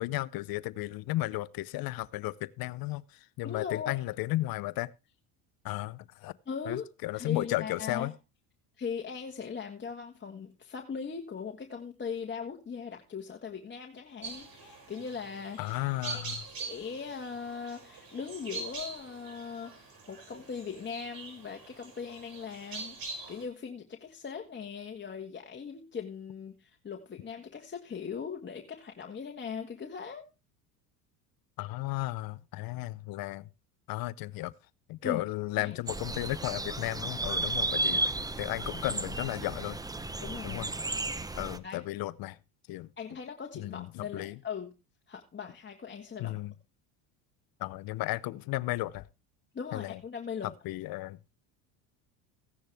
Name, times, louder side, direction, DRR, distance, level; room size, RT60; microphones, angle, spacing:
voice 1, 0.0-4.9 5.6-6.3 6.7-8.1 15.6-16.4 31.6-33.5 33.9-34.5 34.9-38.0 38.4-39.8 40.4-40.7 41.3-42.4 42.7-42.9 43.6-44.3 46.2-46.5 47.6-49.0 49.7-50.0 50.7-51.2, left 18 dB, 50° left, 0.6 m, -34 dB
voice 2, 3.4-4.0 6.5-8.1 8.8-15.8 16.0-23.0 23.3-30.3 35.0-35.2 35.6-35.8 40.2-40.7 41.6-41.8 43.0-44.7 45.1-46.4 49.5-50.5, left 6 dB, 25° left, 1.6 m, -40 dB
sound 1, 14.2-23.5, right 4 dB, 50° right, 6.2 m, -43 dB
sound 2, 35.9-41.6, right 2 dB, 10° right, 0.8 m, -33 dB
15.5 x 10.0 x 3.4 m
supercardioid pair, 90°, 45 cm